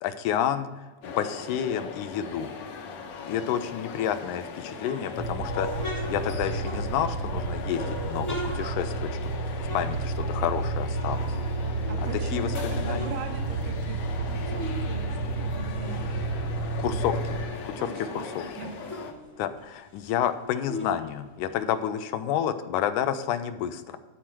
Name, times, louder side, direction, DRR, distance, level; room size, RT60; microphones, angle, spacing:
voice 1, 0.0-2.5 3.2-11.3 12.3-13.0 16.8-17.4 17.7-17.9 18.2-18.5 19.4-24.0, left 10 dB, 80° left, 10 dB, 2.0 m, -30 dB
sound 1, 1.0-19.1, left 5 dB, 65° left, 1.8 m, -39 dB
sound 2, 4.6-7.3 7.7-10.6 10.9-12.2 12.6-14.9 15.2-17.7 18.1-18.2 18.4-21.9, left 1 dB, 40° left, 0.8 m, -40 dB
sound 3, 5.2-17.5, right 3 dB, 70° right, 1.3 m, -31 dB
voice 2, 11.9-14.0 14.3-16.1 17.7-18.8, right 4 dB, 85° right, 5 dB, 2.8 m, -40 dB
11.0 x 4.4 x 6.1 m, 1.2 s
omnidirectional pair, 3.7 m